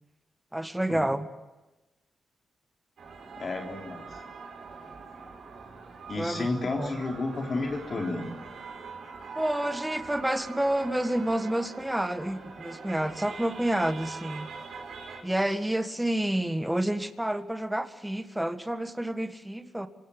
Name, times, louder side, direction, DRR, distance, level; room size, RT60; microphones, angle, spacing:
voice 1, 0.5-1.3 6.2-7.0 9.4-14.5 15.2-19.9, right 1 dB, 10° right, 10 dB, 1.8 m, -29 dB
sound 1, 3.0-15.2, right 4 dB, 70° right, 6.8 m, -43 dB
voice 2, 3.4-4.1 6.1-8.3, left 2 dB, 50° left, 1 dB, 4.0 m, -31 dB
26.0 x 17.5 x 9.9 m, 1.1 s
supercardioid pair, 55°, 0 cm